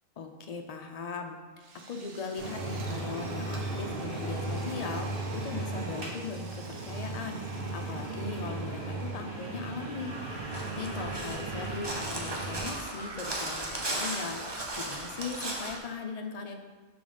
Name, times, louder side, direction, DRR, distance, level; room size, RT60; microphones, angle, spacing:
voice 1, 0.2-16.5, left 4 dB, 55° left, 4 dB, 0.4 m, -39 dB
Drill, 1.6-9.5, right 4 dB, 65° right, 1.0 m, -51 dB
sound 1, 2.4-12.7, right 2 dB, 50° right, 1.4 m, -36 dB
Crow, 9.9-15.8, right 2 dB, 25° right, 0.6 m, -36 dB
5.0 x 3.9 x 5.5 m, 1.3 s
omnidirectional pair, 1.3 m